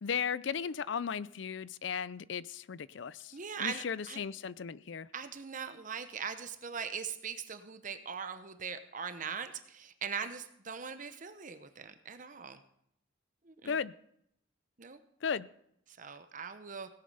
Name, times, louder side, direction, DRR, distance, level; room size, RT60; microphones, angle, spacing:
voice 1, 0.0-5.1 13.6-13.9 15.2-15.5, left 6 dB, 65° left, 19 dB, 0.5 m, -36 dB
voice 2, 3.3-4.2 5.1-12.6 13.5-13.8 14.8-15.0 16.0-16.9, right 6 dB, 40° right, 10 dB, 0.9 m, -41 dB
17.0 x 8.5 x 5.5 m, 0.73 s
head